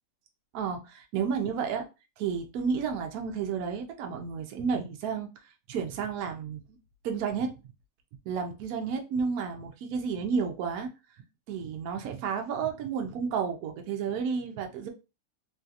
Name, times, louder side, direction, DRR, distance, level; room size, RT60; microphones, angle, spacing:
voice 1, 0.5-1.8 2.2-6.6 7.0-7.6 8.3-10.9 11.5-14.9, right 6 dB, 70° right, 1.0 m, -31 dB
3.2 x 2.7 x 2.4 m
omnidirectional pair, 1.7 m